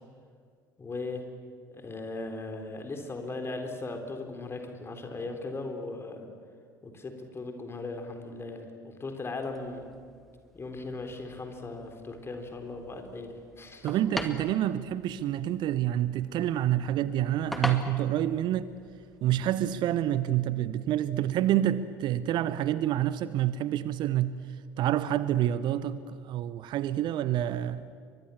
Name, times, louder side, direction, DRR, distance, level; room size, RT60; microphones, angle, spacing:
voice 1, 0.8-1.2 1.7-6.2 6.8-9.8 10.5-13.9, left 3 dB, 25° left, 4.0 m, -38 dB
sound 1, 9.4-20.2, equal, ahead, 2.4 m, -43 dB
voice 2, 13.8-18.7 19.2-24.3 24.8-27.9, right 12 dB, 45° right, 0.8 m, -28 dB
29.5 x 24.0 x 7.2 m
figure-of-eight pair, 65°, 11 cm